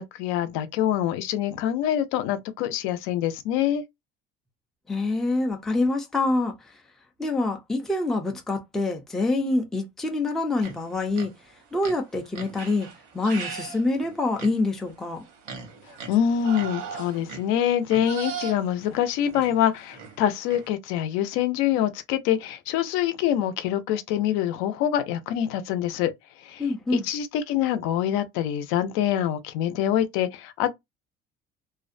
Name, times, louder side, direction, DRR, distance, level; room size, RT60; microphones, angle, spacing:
voice 1, 0.0-3.8 16.1-26.1 26.4-26.6 26.9-30.7, left 10 dB, 80° left, 0.5 m, -25 dB
voice 2, 4.9-6.5 7.2-11.3 11.7-12.9 13.1-15.2 26.6-27.1, left 2 dB, ahead, 0.3 m, -26 dB
sound 1, 10.6-11.4 11.8-20.7, right 6 dB, 85° right, 1.0 m, -39 dB
2.5 x 2.1 x 2.5 m
cardioid pair, 180°, 20 cm